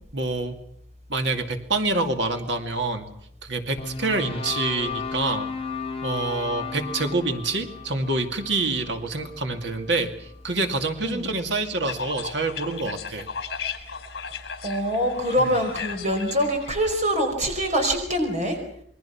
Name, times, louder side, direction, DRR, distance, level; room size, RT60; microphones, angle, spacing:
voice 1, 0.1-0.6 1.1-3.1 3.4-5.5 6.0-13.3 15.4-15.5, right 3 dB, 65° right, 6 dB, 2.4 m, -27 dB
sound 1, 3.8-10.0, left 5 dB, 30° left, 1.8 m, -34 dB
sound 2, 11.9-16.8, left 6 dB, 60° left, 4.2 m, -35 dB
voice 2, 14.6-18.6, equal, 35° right, 4 dB, 5.0 m, -24 dB
28.0 x 22.5 x 5.9 m, 0.71 s
head